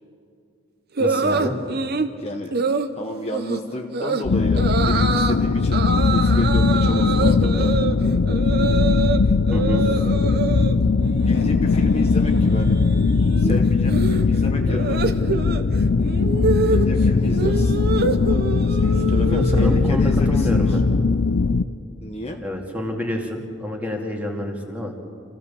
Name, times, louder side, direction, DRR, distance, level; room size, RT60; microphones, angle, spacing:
voice 1, 1.0-1.5 9.5-9.9 19.2-20.8 22.4-24.9, left 1 dB, 5° right, 0 dB, 2.3 m, -28 dB
sound 1, 1.0-2.1 2.5-2.9 3.3-3.6 3.9-4.2 4.6-5.4 5.7-9.2 9.5-10.8 11.1-11.5 11.8-19.9, right 4 dB, 45° right, 0.9 m, -26 dB
voice 2, 2.2-2.5 2.9-7.7 9.6-9.8 10.8-11.0 11.2-12.8 13.4-15.0 16.7-17.7 18.6-20.8 22.0-22.4, left 1 dB, 30° left, 2 dB, 1.1 m, -32 dB
sound 2, 4.2-21.6, left 4 dB, 60° left, 0.5 m, -19 dB
27.0 x 16.0 x 7.0 m, 2.4 s
head